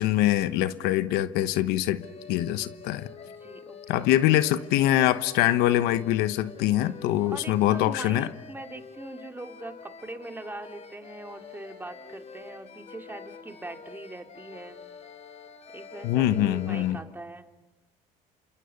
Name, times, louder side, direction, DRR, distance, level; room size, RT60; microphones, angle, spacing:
voice 1, 0.0-2.0 2.3-3.1 3.9-8.3 16.0-17.0, left 13 dB, 85° left, 13 dB, 1.1 m, -24 dB
sound 1, 2.0-17.0, left 5 dB, 45° left, 3.8 m, -46 dB
voice 2, 3.2-4.1 7.3-14.8 15.7-17.5, right 2 dB, 10° right, 5 dB, 2.6 m, -42 dB
28.5 x 27.0 x 7.0 m, 1.0 s
supercardioid pair, 90°, 16 cm